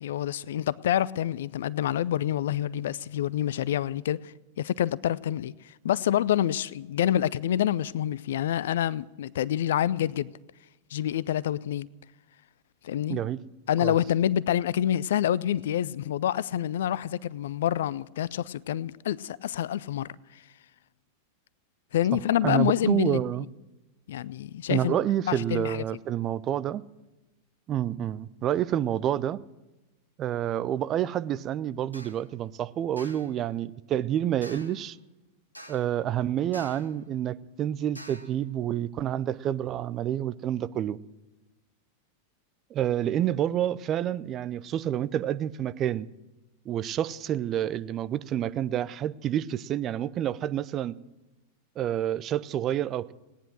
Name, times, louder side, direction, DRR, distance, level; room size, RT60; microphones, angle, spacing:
voice 1, 0.0-4.2 4.6-10.3 10.9-11.9 12.8-13.2 13.7-20.1 21.9-23.2 24.1-24.9 25.3-25.8, left 11 dB, 60° left, 0.4 m, -27 dB
voice 2, 22.4-23.5 24.7-26.8 27.7-29.4 30.2-35.0 35.7-41.0 42.7-46.1 46.7-51.0 51.8-53.1, right 11 dB, 30° right, 0.5 m, -28 dB
sound 1, 31.9-32.3 33.0-33.4 34.4-34.9 35.6-36.0 36.5-37.0 38.0-38.4, equal, 90° left, 1.4 m, -47 dB
17.5 x 10.0 x 7.6 m
figure-of-eight pair, 90°, 0 cm